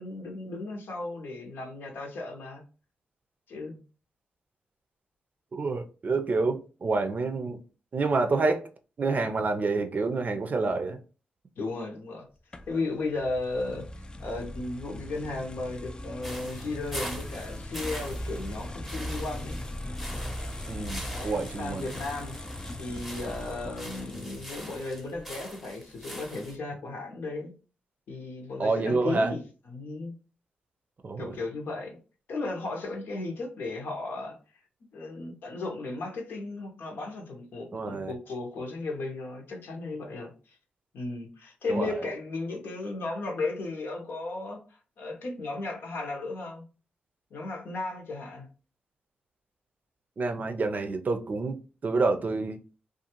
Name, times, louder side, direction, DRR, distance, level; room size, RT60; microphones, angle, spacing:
voice 1, 0.0-2.6 3.5-3.8 11.6-12.3 12.7-19.6 21.0-22.4 22.8-27.5 28.1-30.1 31.2-32.0 32.3-34.4 34.9-40.6 40.9-44.6 45.0-46.6 47.3-48.5, left 3 dB, 75° left, 0.9 m, -35 dB
voice 2, 5.5-7.6 7.9-8.7 9.0-11.0 20.7-21.9 28.6-29.3 31.0-31.3 37.7-38.1 41.7-42.0 50.2-52.6, right 3 dB, 50° right, 0.5 m, -28 dB
sound 1, 12.5-25.2, left 1 dB, 25° left, 0.4 m, -39 dB
sound 2, 16.2-26.6, equal, ahead, 0.7 m, -43 dB
2.5 x 2.3 x 2.8 m
cardioid pair, 60°, 4 cm